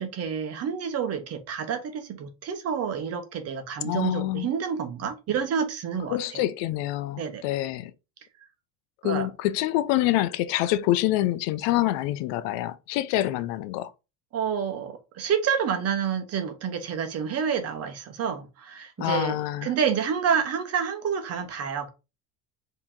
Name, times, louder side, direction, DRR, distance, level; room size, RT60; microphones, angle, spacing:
voice 1, 0.0-6.4 7.2-7.4 9.0-9.3 14.3-19.4 19.6-21.9, right 7 dB, 35° right, 0.9 m, -28 dB
voice 2, 3.8-4.5 6.1-7.9 9.0-13.9 19.0-19.7, left 15 dB, 80° left, 0.6 m, -26 dB
4.7 x 3.0 x 3.6 m
cardioid pair, 175°, 41 cm